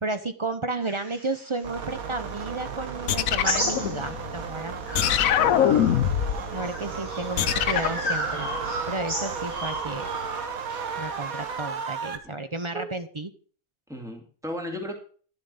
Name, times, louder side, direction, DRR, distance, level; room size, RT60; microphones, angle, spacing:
voice 1, 0.0-4.8 6.5-10.1 11.0-13.3, right 2 dB, 30° right, 10 dB, 0.5 m, -32 dB
sound 1, 0.8-4.4 4.8-11.5, right 1 dB, 50° right, 4.2 m, -34 dB
sound 2, 1.6-12.2, right 6 dB, 75° right, 1.6 m, -35 dB
sound 3, 3.1-4.4 4.9-6.5 7.4-8.1, left 10 dB, 75° left, 1.1 m, -23 dB
voice 2, 5.2-5.6 12.7-12.8 13.9-14.9, equal, ahead, 2 dB, 2.3 m, -35 dB
11.0 x 7.6 x 5.2 m, 0.42 s
omnidirectional pair, 1.5 m